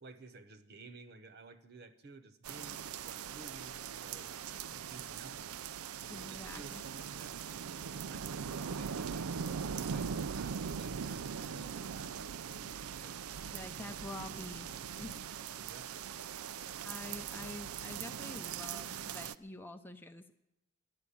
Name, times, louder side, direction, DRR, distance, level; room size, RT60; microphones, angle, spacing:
voice 1, 0.0-5.5 6.0-7.4 7.8-9.3 9.7-13.2 15.6-15.9, right 3 dB, 50° right, 11 dB, 0.9 m, -54 dB
sound 1, 2.4-19.3, right 7 dB, 90° right, 0.5 m, -41 dB
voice 2, 6.1-6.8 13.5-14.7 15.0-15.2 16.8-20.3, left 2 dB, 10° left, 7 dB, 0.6 m, -47 dB
11.5 x 11.5 x 8.5 m, 0.90 s
head